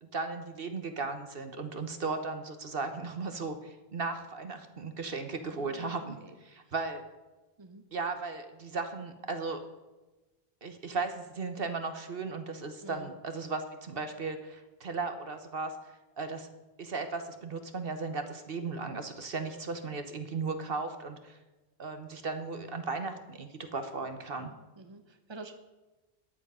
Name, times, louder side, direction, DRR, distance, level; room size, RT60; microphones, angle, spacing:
voice 1, 0.0-6.2 6.4-7.0 7.9-9.6 10.6-15.7 16.2-16.5 16.8-21.4 21.8-24.5, right 4 dB, 60° right, 7 dB, 1.3 m, -36 dB
voice 2, 5.4-6.3 7.6-7.9 12.8-13.1 24.8-25.5, right 3 dB, 25° right, 7 dB, 1.1 m, -48 dB
13.5 x 10.0 x 5.6 m, 1.1 s
omnidirectional pair, 1.1 m